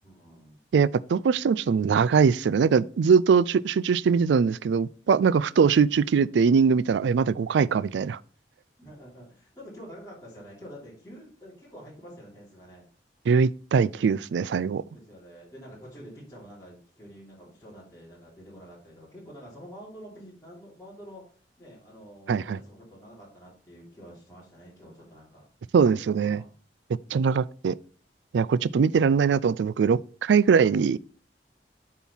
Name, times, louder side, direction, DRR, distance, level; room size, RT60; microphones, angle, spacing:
voice 1, 0.0-0.6 8.8-12.8 14.9-25.5 26.1-26.5, equal, 15° left, 2.9 m, -47 dB
voice 2, 0.7-8.2 13.3-14.8 22.3-22.6 25.7-26.4 27.1-27.7 28.3-31.0, right 6 dB, 80° right, 0.3 m, -22 dB
7.1 x 4.5 x 5.5 m
head